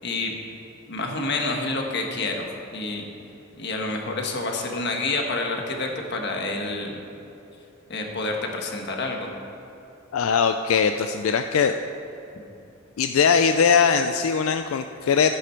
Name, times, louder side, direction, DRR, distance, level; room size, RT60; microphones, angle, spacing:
voice 1, 0.0-0.4 0.9-3.1 3.6-7.0 7.9-9.3, left 2 dB, 55° left, 2 dB, 1.4 m, -28 dB
voice 2, 10.1-11.8 13.0-15.3, left 6 dB, 90° left, 8 dB, 0.4 m, -20 dB
12.0 x 10.0 x 4.4 m, 2.9 s
head